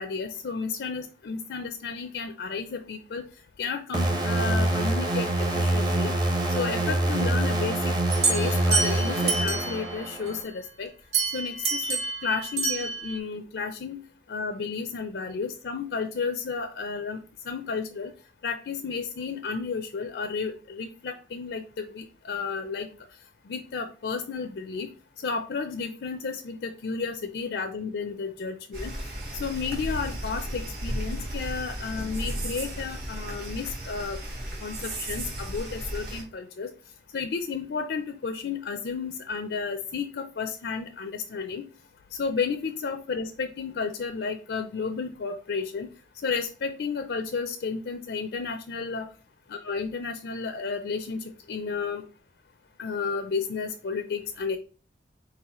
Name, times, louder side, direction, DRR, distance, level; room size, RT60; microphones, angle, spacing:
voice 1, 0.0-3.2 3.6-6.1 6.5-7.9 8.3-10.9 11.3-14.0 14.3-17.2 17.4-18.1 18.4-22.9 23.5-24.9 25.2-28.9 29.4-34.2 34.6-36.7 37.1-41.7 42.1-45.9 46.2-49.1 49.5-52.0 52.8-54.6, left 5 dB, 80° left, 7 dB, 0.4 m, -32 dB
sound 1, 3.9-10.4, right 1 dB, 25° right, 0.7 m, -25 dB
sound 2, 8.1-10.0 11.1-13.2, right 4 dB, 75° right, 2.1 m, -28 dB
sound 3, 28.7-36.2, right 1 dB, 55° right, 1.6 m, -34 dB
4.2 x 4.0 x 2.9 m, 0.38 s
head